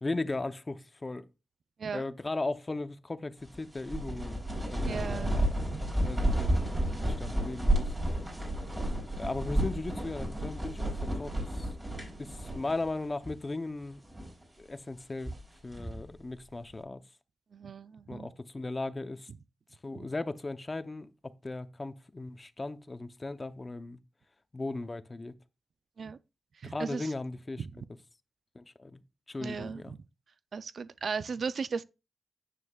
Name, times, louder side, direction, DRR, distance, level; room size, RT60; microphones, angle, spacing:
voice 1, 0.0-1.3 1.9-4.4 4.7-5.5 5.8-7.9 9.2-11.7 12.2-14.0 14.6-15.4 15.6-17.0 18.1-19.3 19.8-24.0 24.5-25.4 26.6-27.7 28.5-29.0 29.3-29.9, left 2 dB, 25° left, 0.7 m, -37 dB
sound 1, 3.4-13.0 13.2-13.3 13.9-14.4 15.0-16.1, right 1 dB, 15° right, 6.0 m, -32 dB
voice 2, 4.8-6.1 17.5-18.3 20.0-20.1 26.0-26.2 26.6-27.1 27.6-27.7 29.4-29.8 30.5-31.8, right 5 dB, 60° right, 0.4 m, -37 dB
9.8 x 9.2 x 2.3 m
wide cardioid pair, 130°, 0 cm